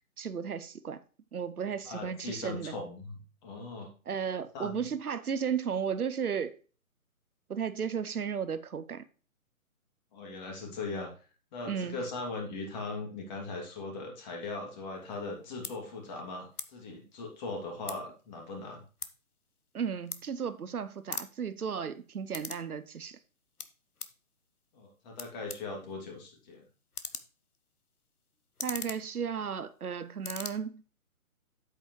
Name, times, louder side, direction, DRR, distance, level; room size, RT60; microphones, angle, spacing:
voice 1, 0.2-1.0 1.3-2.7 4.1-6.6 7.5-9.0 11.6-12.0 19.7-23.2 28.6-30.8, right 7 dB, 80° right, 0.9 m, -34 dB
voice 2, 1.8-3.9 4.5-4.9 10.1-11.1 11.5-18.8 24.7-26.7, left 3 dB, 30° left, 2.7 m, -39 dB
sound 1, 15.1-15.3 15.6-15.7 16.5-16.7 17.0-18.2 18.5-20.7 21.0-22.7 23.0-24.2 24.8-24.9 25.2-29.9 30.1-30.5, left 5 dB, 85° left, 1.1 m, -42 dB
8.4 x 7.7 x 3.2 m
figure-of-eight pair, 140°, 43 cm